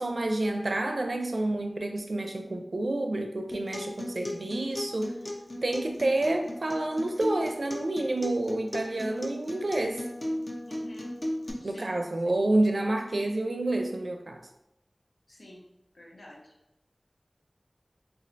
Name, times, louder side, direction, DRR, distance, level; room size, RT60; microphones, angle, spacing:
voice 1, 0.0-5.1 5.6-10.0 11.6-14.4, right 2 dB, 85° right, 3 dB, 0.4 m, -29 dB
Acoustic guitar, 3.5-11.5, left 1 dB, 45° left, 0.6 m, -37 dB
voice 2, 10.7-11.2 11.6-12.0 15.3-15.6 15.9-16.5, equal, 90° left, -3 dB, 0.7 m, -46 dB
4.3 x 2.4 x 2.5 m, 0.89 s
wide cardioid pair, 50°, 0 cm